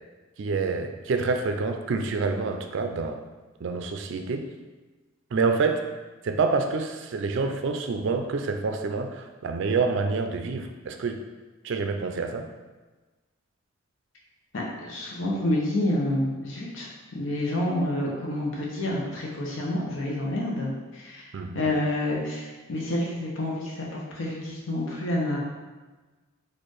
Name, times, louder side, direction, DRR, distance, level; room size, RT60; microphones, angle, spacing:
voice 1, 0.4-3.2 3.6-4.5 5.3-5.8 6.2-11.2 11.6-12.5 21.3-21.7, right 4 dB, 65° right, 6 dB, 0.4 m, -27 dB
voice 2, 14.5-21.3 21.5-25.4, left 1 dB, 75° left, -3 dB, 0.8 m, -28 dB
4.3 x 2.5 x 4.7 m, 1.2 s
head